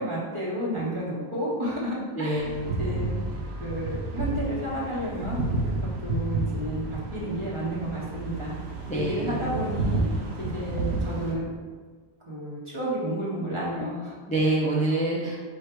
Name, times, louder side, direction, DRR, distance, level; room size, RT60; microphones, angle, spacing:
voice 1, 0.0-5.4 6.0-8.6 8.9-10.1 10.4-11.4 12.3-14.1, equal, 30° right, -7 dB, 1.2 m, -31 dB
voice 2, 2.2-2.8 8.9-9.4 14.3-15.4, right 2 dB, 10° left, -4 dB, 0.3 m, -26 dB
sound 1, 2.4-11.3, right 2 dB, 85° right, 0.9 m, -31 dB
4.9 x 2.4 x 4.4 m, 1.5 s
omnidirectional pair, 1.1 m